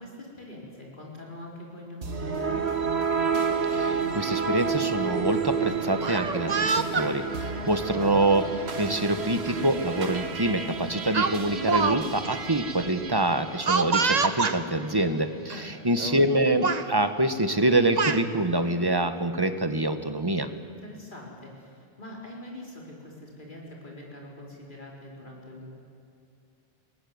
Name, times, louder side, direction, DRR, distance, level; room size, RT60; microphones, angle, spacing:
voice 1, 0.0-2.9 7.4-7.8 15.5-15.7 20.6-25.8, left 1 dB, 50° left, -2 dB, 4.8 m, -43 dB
sound 1, 2.0-14.3, right 5 dB, 90° right, 1.7 m, -31 dB
voice 2, 3.7-20.5, right 1 dB, 25° right, 9 dB, 1.2 m, -25 dB
Speech, 6.0-7.1 8.0-8.2 9.5-9.6 10.0-10.2 11.1-12.0 12.2-12.4 13.7-14.6 15.5-15.6 16.0-16.3 16.6-16.9 17.6-18.2, right 5 dB, 45° right, 1.0 m, -26 dB
21.0 x 17.5 x 9.5 m, 2.6 s
omnidirectional pair, 1.1 m